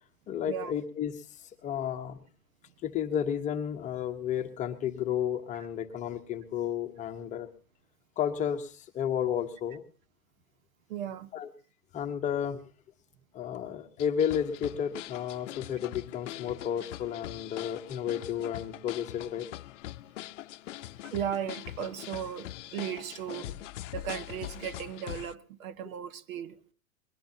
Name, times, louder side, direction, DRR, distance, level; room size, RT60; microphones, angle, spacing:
voice 1, 0.3-1.2 1.6-2.2 2.8-7.5 8.2-9.8 11.3-11.5 11.9-12.6 13.3-19.5 23.3-23.5, left 9 dB, 15° left, 6 dB, 1.0 m, -32 dB
voice 2, 10.9-11.3 21.0-23.5 23.9-26.6, right 9 dB, 70° right, 14 dB, 1.5 m, -36 dB
sound 1, 14.0-25.3, left 14 dB, 60° left, 0.7 m, -42 dB
21.5 x 18.0 x 2.8 m, 0.38 s
hypercardioid pair, 150°, 42 cm